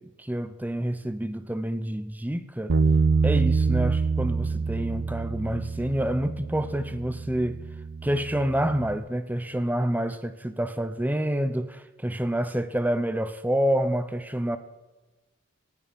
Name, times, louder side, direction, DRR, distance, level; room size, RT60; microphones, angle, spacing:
voice 1, 0.2-2.8 3.2-7.6 8.0-14.6, right 1 dB, 10° right, 0.7 m, -28 dB
Bass guitar, 2.7-8.9, right 4 dB, 65° right, 0.6 m, -26 dB
19.0 x 14.5 x 5.2 m
head